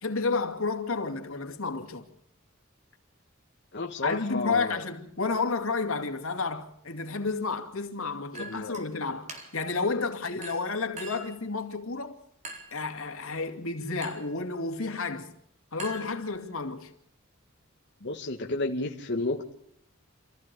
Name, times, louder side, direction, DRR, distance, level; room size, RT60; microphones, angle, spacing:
voice 1, 0.0-2.0 4.0-12.2 12.7-15.3 15.7-16.9, left 4 dB, 90° left, 2.6 m, -31 dB
voice 2, 3.7-4.8 8.3-8.9 18.0-19.5, left 2 dB, 55° left, 1.5 m, -32 dB
Chink clink, 8.3-8.9 9.3-9.7 10.4-11.4 12.4-12.8 14.0-14.4 15.8-16.6, right 1 dB, 35° right, 4.3 m, -43 dB
28.0 x 15.0 x 7.0 m
head